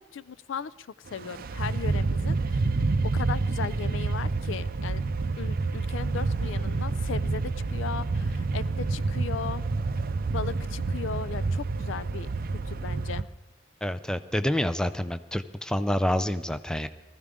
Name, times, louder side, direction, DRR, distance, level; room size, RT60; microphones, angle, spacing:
voice 1, 0.0-2.6 3.0-5.0 5.4-9.6 10.3-12.3 12.7-13.3, left 6 dB, 80° left, 18 dB, 0.4 m, -37 dB
sound 1, 1.1-13.2, right 3 dB, 50° right, 0.5 m, -28 dB
voice 2, 13.8-16.9, left 1 dB, 5° left, 12 dB, 0.5 m, -27 dB
19.5 x 14.5 x 3.7 m, 1.1 s
head